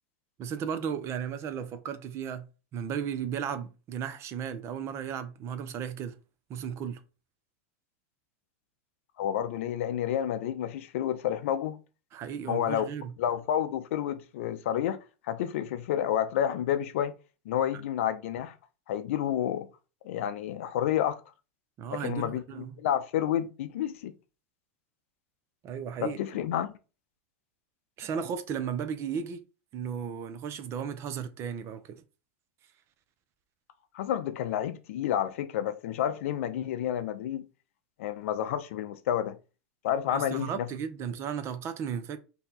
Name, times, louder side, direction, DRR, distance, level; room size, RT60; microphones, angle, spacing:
voice 1, 0.4-2.5 2.7-6.2 6.5-7.0 12.1-13.1 21.8-22.8 25.6-26.2 28.0-29.4 29.7-32.0 40.1-42.2, right 7 dB, 40° right, 0.5 m, -35 dB
voice 2, 9.2-11.8 12.5-12.9 13.2-15.0 15.3-17.1 17.5-18.5 18.9-19.7 20.0-21.2 21.9-24.1 26.0-26.7 33.9-37.5 38.0-39.4 39.8-40.7, left 10 dB, 70° left, 0.5 m, -30 dB
2.7 x 2.2 x 4.0 m
hypercardioid pair, 110°, 7 cm